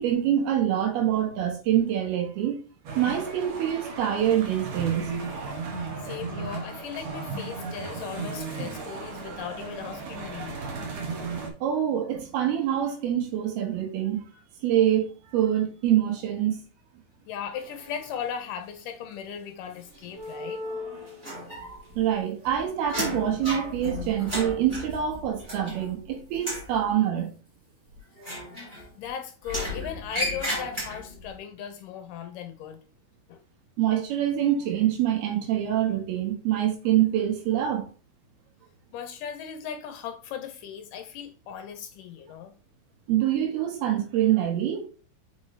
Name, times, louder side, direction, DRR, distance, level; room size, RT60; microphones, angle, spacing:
voice 1, 0.0-2.6 3.0-5.1 11.6-14.2 14.6-15.1 15.3-16.6 22.0-27.3 33.8-37.9 43.1-44.9, right 11 dB, 80° right, 3.3 m, -25 dB
sound 1, 2.9-11.5, right 4 dB, 60° right, 2.1 m, -35 dB
voice 2, 6.0-10.6 17.3-20.6 28.7-32.8 33.3-33.4 38.9-42.5, left 8 dB, 80° left, 1.9 m, -37 dB
sound 2, 17.5-18.6 19.1-24.5, left 2 dB, 35° right, 1.3 m, -43 dB
sound 3, 21.2-22.0 22.3-26.0 26.3-26.7 28.2-29.1 29.4-31.2, left 1 dB, 15° right, 3.1 m, -34 dB
7.2 x 5.0 x 3.2 m
omnidirectional pair, 4.5 m